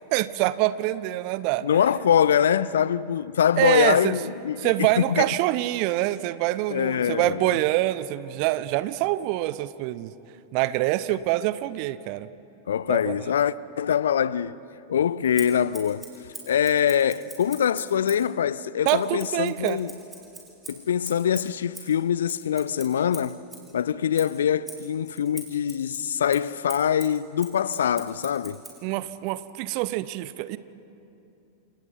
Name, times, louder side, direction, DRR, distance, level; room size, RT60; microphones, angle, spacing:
voice 1, 0.1-1.7 3.6-4.1 4.6-10.1 10.5-12.3 12.9-13.3 18.8-19.8 28.8-30.6, right 16 dB, 45° right, 0.8 m, -25 dB
voice 2, 1.6-5.3 6.7-7.6 12.7-14.6 14.9-16.1 16.5-19.9 20.7-23.4 23.7-28.6, left 9 dB, 65° left, 0.5 m, -24 dB
Scissors, 15.3-18.3 18.8-23.7 24.1-28.8, right 2 dB, 10° right, 5.4 m, -43 dB
28.5 x 27.5 x 5.4 m
figure-of-eight pair, 90°, 0 cm